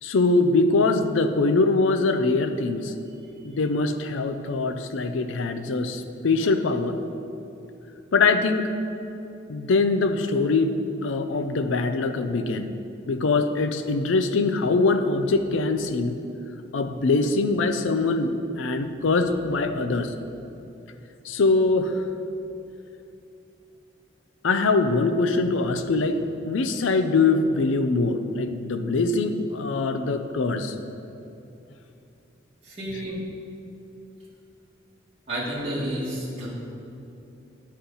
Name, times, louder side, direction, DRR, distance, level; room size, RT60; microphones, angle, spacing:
voice 1, 0.0-2.9 3.4-7.0 8.1-8.7 9.5-12.7 13.1-16.2 16.7-20.1 21.2-22.1 24.4-26.2 26.5-30.8, left 3 dB, 70° left, 8 dB, 0.5 m, -23 dB
voice 2, 32.6-33.2 35.3-36.5, right 1 dB, 30° right, -9 dB, 1.7 m, -30 dB
11.0 x 4.2 x 4.0 m, 2.8 s
head